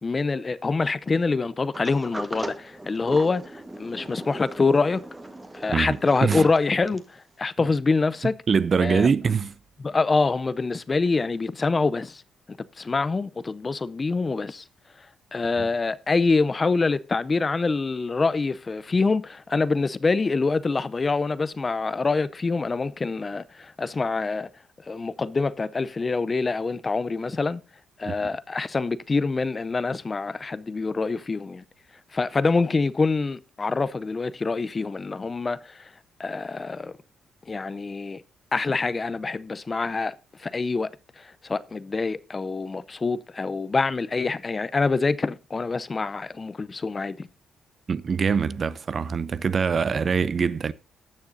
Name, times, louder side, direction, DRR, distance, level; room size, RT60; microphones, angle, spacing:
voice 1, 0.0-5.0 5.5-8.4 8.8-9.1 9.8-12.2 12.8-14.6 15.3-24.5 24.9-27.6 28.0-31.6 32.1-35.9 36.2-36.9 37.5-38.2 38.5-40.1 40.4-40.9 41.2-47.3, left 4 dB, 30° left, 0.5 m, -25 dB
Sliding door, 1.7-7.2, right 1 dB, 15° right, 1.3 m, -37 dB
voice 2, 5.7-6.5 8.5-9.5 15.6-15.7 28.0-28.1 47.9-50.7, right 6 dB, 45° right, 0.5 m, -24 dB
18.5 x 6.5 x 2.6 m
cardioid pair, 90°, 0 cm